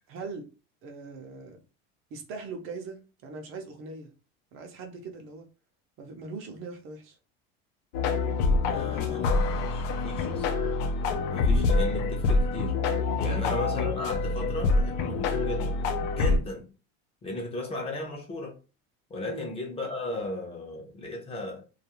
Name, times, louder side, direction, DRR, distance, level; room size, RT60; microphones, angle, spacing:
voice 1, 0.1-0.5 0.8-1.6 2.1-4.1 4.5-5.5 6.0-7.2 8.7-8.9 13.3-13.5 16.2-16.4 19.2-19.5, right 3 dB, 45° right, 0.6 m, -40 dB
sound 1, 7.9-16.4, left 3 dB, 85° left, 0.6 m, -26 dB
voice 2, 8.6-10.5 11.3-12.7 13.2-15.8 16.1-16.6 17.2-18.5 19.1-21.6, left 1 dB, 20° left, 0.6 m, -36 dB
2.4 x 2.3 x 2.9 m
cardioid pair, 150°, 30 cm